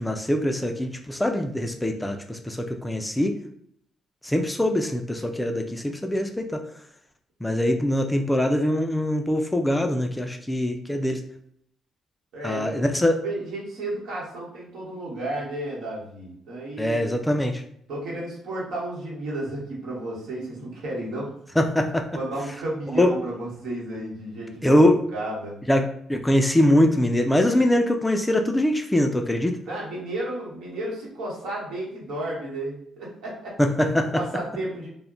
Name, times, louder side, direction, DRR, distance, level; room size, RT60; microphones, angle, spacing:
voice 1, 0.0-3.3 4.2-6.6 7.4-11.2 12.4-13.2 16.8-17.6 21.6-22.1 23.0-23.1 24.6-25.0 25.7-29.6 33.6-34.1, left 1 dB, 10° left, 4 dB, 0.3 m, -23 dB
voice 2, 12.3-12.9 13.2-17.0 17.9-21.6 22.1-24.9 25.1-25.5 29.7-33.6 33.8-34.9, right 1 dB, 80° right, -4 dB, 1.1 m, -32 dB
2.2 x 2.1 x 3.7 m, 0.68 s
cardioid pair, 90°, 0 cm